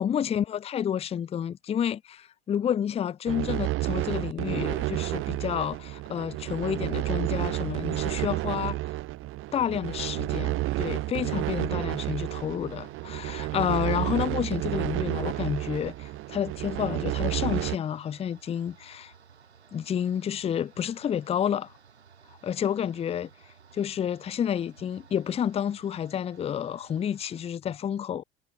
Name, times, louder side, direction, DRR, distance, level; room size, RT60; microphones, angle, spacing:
voice 1, 0.0-8.8 9.5-19.1 19.7-21.7 22.4-23.3 23.7-28.2, left 9 dB, 20° left, 0.6 m, -30 dB
sound 1, 3.3-17.8, right 17 dB, 40° right, 0.8 m, -30 dB
sound 2, 12.4-27.5, right 6 dB, 85° right, 4.9 m, -55 dB
figure-of-eight pair, 75°, 32 cm